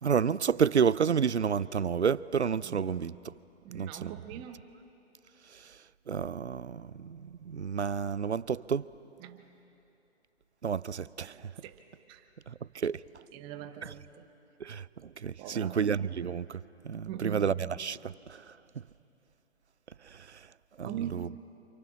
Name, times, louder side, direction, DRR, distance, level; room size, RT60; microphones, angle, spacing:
voice 1, 0.0-3.1 3.7-4.1 6.1-8.9 10.6-11.5 12.5-13.0 14.6-16.6 16.8-17.5 17.8-18.4 20.1-20.4 20.8-21.3, right 7 dB, 75° right, 0.6 m, -30 dB
voice 2, 2.6-3.1 3.6-4.7 9.2-9.5 11.6-12.3 13.3-14.3 15.4-15.9 17.1-17.7 20.8-21.4, right 10 dB, 15° right, 0.9 m, -42 dB
29.5 x 28.0 x 6.1 m
figure-of-eight pair, 130°, 34 cm